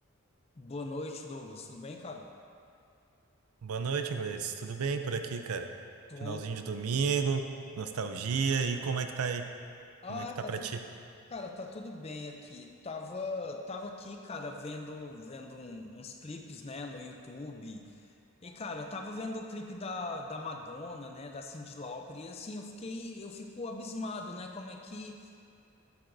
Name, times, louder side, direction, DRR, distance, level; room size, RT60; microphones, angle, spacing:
voice 1, 0.6-2.3 6.1-6.5 10.0-10.7 11.3-17.9 18.4-25.2, left 2 dB, 30° left, 3 dB, 0.4 m, -40 dB
voice 2, 3.6-5.7 6.2-7.4 7.8-9.4 10.1-10.8, right 5 dB, 85° right, 7 dB, 0.5 m, -32 dB
8.4 x 7.7 x 2.6 m, 2.5 s
head